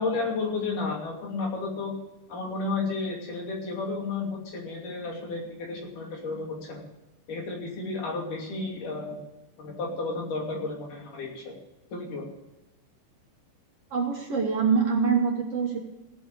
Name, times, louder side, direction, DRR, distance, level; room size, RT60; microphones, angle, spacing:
voice 1, 0.0-2.0 2.3-6.8 7.3-9.2 9.6-11.6 11.9-12.3, left 3 dB, 70° left, -1 dB, 4.4 m, -32 dB
voice 2, 13.9-15.8, right 5 dB, 50° right, 1 dB, 2.3 m, -24 dB
17.0 x 6.2 x 8.4 m, 1.0 s
omnidirectional pair, 3.9 m